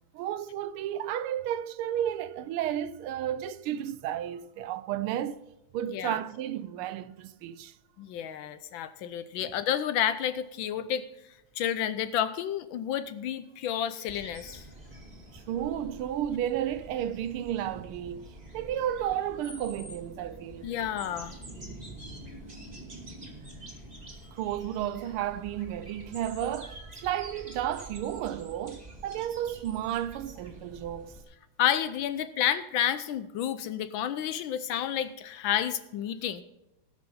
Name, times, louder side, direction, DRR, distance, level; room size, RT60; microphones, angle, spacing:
voice 1, 0.1-5.4 5.7-7.7 9.4-9.5 15.3-20.7 24.3-31.1, right 11 dB, 80° right, 1.5 m, -33 dB
voice 2, 8.0-11.0 11.6-14.6 20.6-21.3 31.6-36.4, left 10 dB, 75° left, 1.2 m, -30 dB
sound 1, 14.1-31.2, right 1 dB, 20° right, 2.0 m, -47 dB
17.5 x 6.3 x 5.5 m
omnidirectional pair, 2.4 m